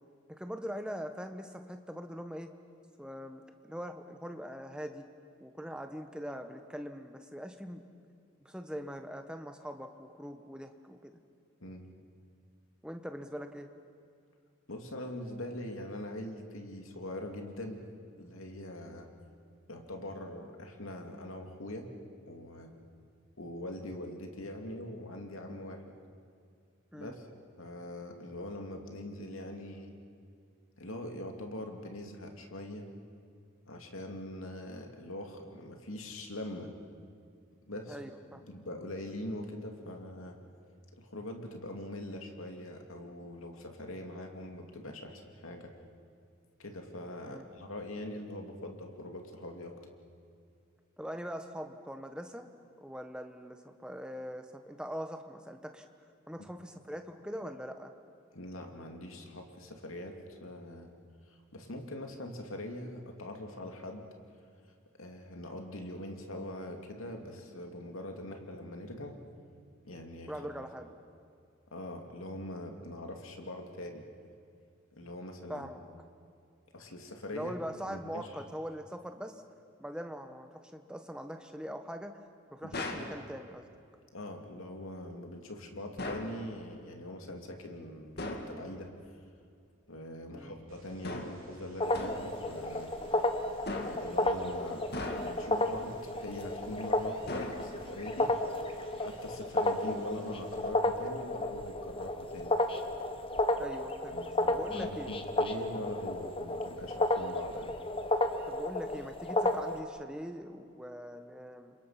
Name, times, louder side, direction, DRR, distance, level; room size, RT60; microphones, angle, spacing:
voice 1, 0.3-2.5 3.0-5.1 5.4-7.8 8.4-11.2 12.8-13.7 26.9-27.1 37.9-38.4 47.2-47.4 51.0-52.5 52.8-55.8 56.3-57.9 70.3-70.9 75.5-75.8 77.3-79.4 79.8-82.2 82.5-83.7 90.3-90.6 103.6-105.1 108.5-111.7, equal, 5° right, 6 dB, 1.2 m, -42 dB
voice 2, 14.7-17.9 18.2-19.1 19.7-21.9 22.2-22.8 23.4-25.8 26.9-27.3 27.6-29.9 30.8-32.8 33.7-36.7 37.7-38.0 38.3-40.4 41.0-45.7 46.6-49.7 58.3-60.9 61.3-64.0 65.0-69.2 69.8-70.3 71.7-74.0 74.9-75.7 76.7-77.6 77.8-78.4 82.6-83.1 84.1-88.9 89.9-92.9 93.8-94.8 95.2-98.3 98.9-102.5 104.1-107.7, left 1 dB, 80° left, 3 dB, 2.7 m, -42 dB
sound 1, 82.7-83.2 86.0-86.4 88.2-88.6 91.0-91.5 91.9-92.3 93.7-94.1 94.9-95.5 97.3-97.9, left 2 dB, 50° left, 2.1 m, -38 dB
sound 2, 90.7-100.7, right 1 dB, 75° right, 3.5 m, -58 dB
sound 3, 91.8-109.8, left 1 dB, 25° left, 1.2 m, -32 dB
30.0 x 26.0 x 5.9 m, 2.3 s
head